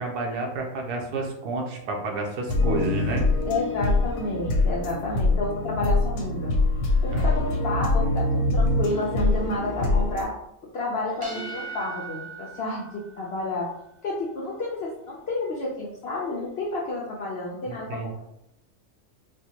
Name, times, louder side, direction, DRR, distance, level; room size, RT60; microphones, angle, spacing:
voice 1, 0.0-3.2 7.1-7.3 17.7-18.1, right 3 dB, 90° right, 1 dB, 1.2 m, -30 dB
sound 1, 2.5-10.2, left 2 dB, 85° left, 1.2 m, -24 dB
voice 2, 2.6-2.9 3.5-6.5 7.0-10.3 10.7-13.7 14.0-17.9, left 2 dB, 70° left, -3 dB, 0.6 m, -30 dB
sound 2, 11.1-13.9, right 4 dB, 45° right, 0.4 m, -39 dB
4.3 x 2.2 x 2.8 m, 0.79 s
omnidirectional pair, 1.6 m